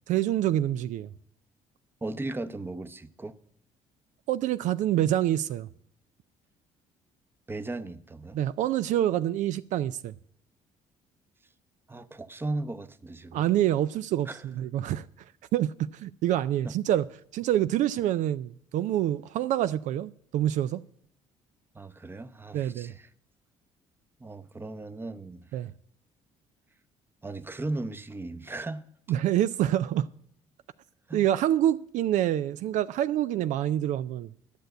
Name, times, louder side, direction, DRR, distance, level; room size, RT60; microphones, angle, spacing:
voice 1, 0.1-1.1 4.3-5.7 8.3-10.1 13.3-15.1 15.5-17.1 17.3-20.8 22.5-22.9 25.5-25.7 29.1-30.1 31.1-34.3, right 12 dB, 65° right, 0.4 m, -26 dB
voice 2, 2.0-3.3 7.5-8.4 11.9-13.5 14.3-14.4 16.6-16.7 21.7-23.1 24.2-25.6 27.2-28.8 31.1-31.3, right 2 dB, 15° right, 0.7 m, -36 dB
10.5 x 6.7 x 7.7 m
supercardioid pair, 70°, 13 cm